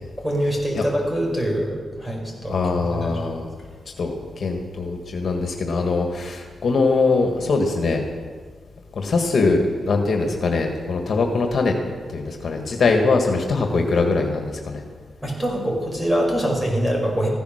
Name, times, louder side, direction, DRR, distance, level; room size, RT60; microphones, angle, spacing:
voice 1, 0.2-2.6 3.0-3.3 15.2-17.3, equal, 10° right, -1 dB, 5.3 m, -24 dB
voice 2, 2.5-3.5 4.0-8.0 8.9-11.7 12.1-14.8, left 3 dB, 60° left, 3 dB, 1.7 m, -22 dB
15.0 x 10.5 x 6.5 m, 1.6 s
cardioid pair, 80°, 0 cm